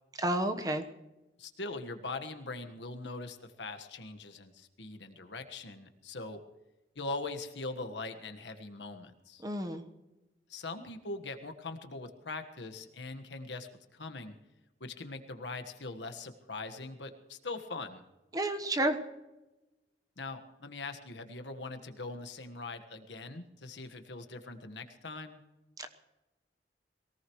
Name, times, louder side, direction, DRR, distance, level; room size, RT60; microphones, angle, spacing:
voice 1, 0.2-0.8 9.4-9.8 18.3-19.0 25.8-25.9, right 1 dB, 20° right, 6 dB, 1.2 m, -30 dB
voice 2, 1.4-6.4 6.9-9.4 10.5-14.3 14.8-18.0 20.2-25.4, left 3 dB, 90° left, 7 dB, 1.5 m, -42 dB
22.5 x 18.0 x 3.2 m, 1.0 s
head